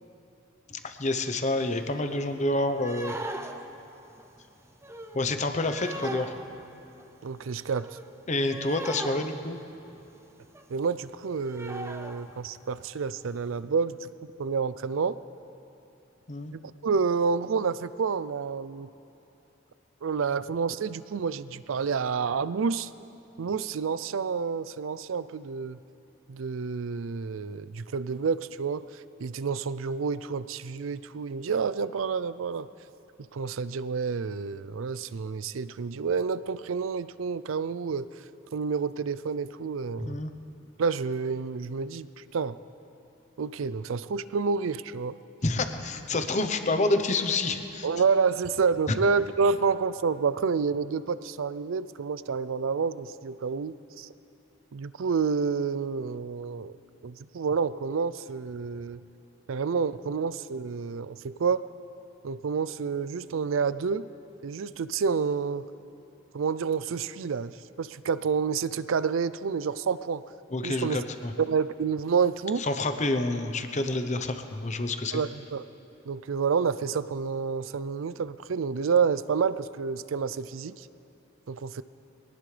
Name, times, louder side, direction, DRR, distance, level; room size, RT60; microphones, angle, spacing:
voice 1, 0.7-3.1 5.1-6.3 8.3-9.6 16.3-16.5 40.0-40.3 45.4-47.9 70.5-71.3 72.6-75.2, left 2 dB, 35° left, 8 dB, 0.8 m, -28 dB
sound 1, 1.7-1.8 1.9-2.3 2.7-10.1 10.4-10.6 10.9-11.0 11.2-12.5 12.9-13.0 13.4-13.5, right 1 dB, 15° right, 0.7 m, -40 dB
voice 2, 7.2-7.9 10.7-14.1 14.4-15.2 16.5-18.9 20.0-22.9 23.4-25.8 26.3-28.8 29.2-32.7 33.3-38.1 38.5-40.2 40.8-42.6 43.4-45.2 47.8-54.1 54.7-56.7 57.0-59.0 59.5-61.7 62.2-64.1 64.4-65.7 66.3-70.2 70.6-71.0 71.4-72.6 75.1-75.6 76.1-80.9 81.5-81.8, right 5 dB, 85° right, 16 dB, 0.5 m, -29 dB
23.5 x 18.0 x 3.3 m, 3.0 s
head